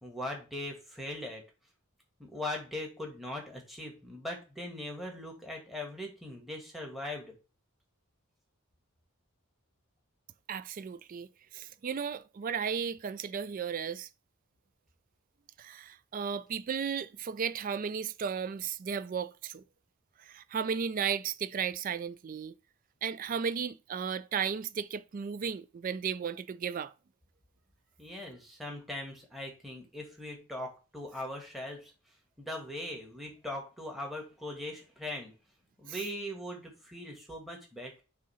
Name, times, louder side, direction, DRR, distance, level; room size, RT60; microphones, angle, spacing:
voice 1, 0.0-1.4 2.2-7.4 28.0-31.9 32.4-35.3 35.8-38.0, left 1 dB, ahead, 1.5 m, -40 dB
voice 2, 10.5-14.1 15.6-19.6 20.2-22.5 23.0-26.9 35.9-36.0, right 7 dB, 40° right, 0.3 m, -35 dB
6.4 x 2.8 x 5.5 m
head